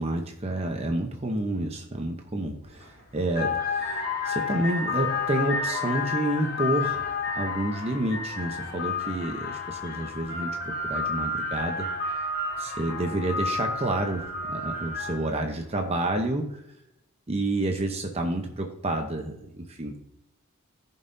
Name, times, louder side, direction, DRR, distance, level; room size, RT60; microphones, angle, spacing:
voice 1, 0.0-11.9 12.6-16.6 17.3-20.0, right 1 dB, 30° right, 3 dB, 0.8 m, -29 dB
sound 1, 2.6-2.9 3.3-15.4, left 4 dB, 50° left, 2.8 m, -31 dB
15.0 x 5.5 x 2.7 m, 0.80 s
head